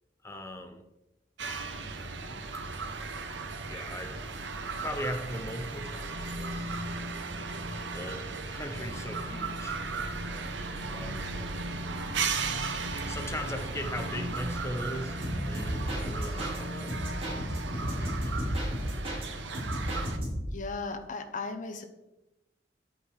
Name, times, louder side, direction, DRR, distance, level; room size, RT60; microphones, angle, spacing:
voice 1, 0.2-0.9 3.7-4.2 4.8-6.7 7.9-9.8 10.3-10.6 10.8-11.7 13.0-17.0 17.3-17.5 17.8-18.4 19.0-19.3, left 1 dB, 15° left, 5 dB, 1.0 m, -39 dB
sound 1, 1.4-20.2, right 3 dB, 85° right, 1.2 m, -36 dB
sound 2, 15.2-16.6 16.9-19.3 19.5-20.6, equal, 35° right, 4.5 m, -33 dB
voice 2, 20.5-21.8, left 3 dB, 45° left, 6 dB, 1.0 m, -36 dB
10.0 x 9.0 x 4.9 m, 0.97 s
head